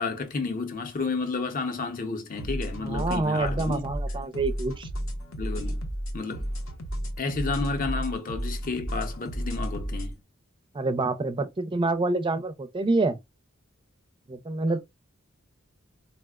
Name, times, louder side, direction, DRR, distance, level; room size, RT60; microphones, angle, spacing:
voice 1, 0.0-3.8 5.4-5.8 6.1-6.5 7.2-10.1, left 4 dB, 45° left, 0.6 m, -31 dB
sound 1, 2.4-10.1, equal, 85° left, 0.7 m, -32 dB
voice 2, 2.8-4.9 10.7-13.2 14.3-14.8, right 2 dB, 25° right, 0.4 m, -27 dB
4.1 x 2.0 x 2.2 m
head